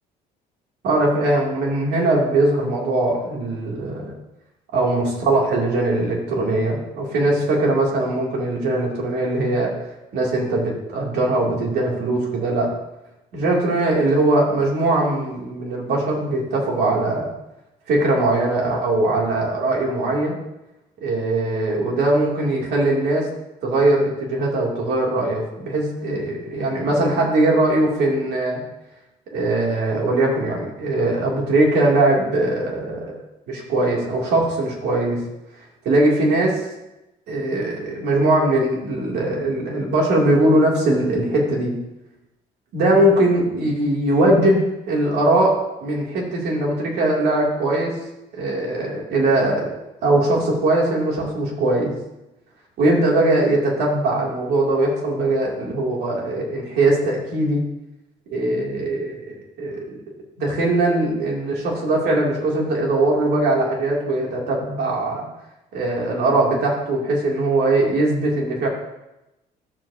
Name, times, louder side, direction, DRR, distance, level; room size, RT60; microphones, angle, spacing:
voice 1, 0.8-4.1 4.7-9.7 10.1-12.7 13.3-17.3 17.9-20.4 21.0-23.3 23.6-28.6 29.3-33.1 33.5-35.2 35.8-36.6 37.3-41.7 42.7-44.6 44.9-45.6 45.8-48.0 48.3-49.7 50.0-51.9 52.8-57.6 58.3-60.0 60.4-65.3 65.7-68.7, right 2 dB, 75° right, -2 dB, 2.8 m, -20 dB
12.0 x 7.2 x 2.8 m, 0.93 s
cardioid pair, 110°, 17 cm